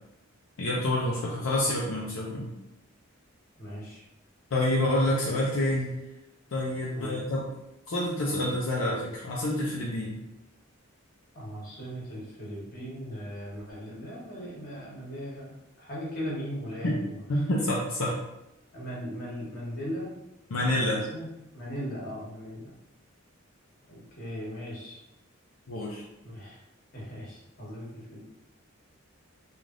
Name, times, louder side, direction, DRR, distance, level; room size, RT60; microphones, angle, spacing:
voice 1, 0.6-2.5 4.5-6.0 6.5-7.5 7.9-10.2 16.8-16.9 17.3-18.2 20.5-21.0 25.7-26.0, left 1 dB, 75° left, -4 dB, 0.5 m, -28 dB
voice 2, 3.6-4.0 6.9-7.2 11.3-17.6 18.7-20.1 20.5-22.7 23.9-25.0 26.2-26.6 26.9-28.2, equal, 45° left, -6 dB, 1.2 m, -38 dB
3.2 x 2.4 x 2.5 m, 0.89 s
head